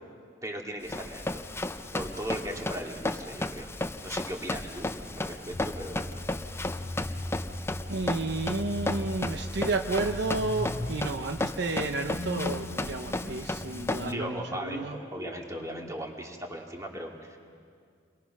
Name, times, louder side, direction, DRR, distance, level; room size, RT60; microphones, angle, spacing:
voice 1, 0.4-1.4 1.9-3.7 4.0-4.9 5.2-6.1 14.0-17.4, right 1 dB, 15° right, 1 dB, 2.4 m, -38 dB
Run, 0.8-14.1, left 2 dB, 15° left, 0.7 m, -34 dB
sound 1, 5.5-15.9, left 1 dB, 45° left, 1.4 m, -39 dB
voice 2, 7.9-15.0, right 3 dB, 65° right, 6 dB, 0.8 m, -31 dB
29.0 x 22.5 x 6.1 m, 2.1 s
head